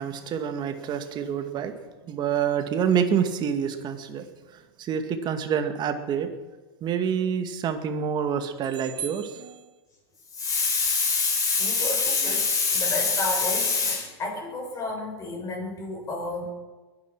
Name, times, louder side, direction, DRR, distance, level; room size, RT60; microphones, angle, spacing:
voice 1, 0.0-1.8 2.1-4.3 4.8-6.3 6.8-9.5, right 7 dB, 35° right, 8 dB, 2.0 m, -27 dB
voice 2, 10.3-16.5, left 4 dB, 25° left, 0 dB, 7.0 m, -26 dB
22.0 x 9.8 x 6.1 m, 1.2 s
hypercardioid pair, 100°, 13 cm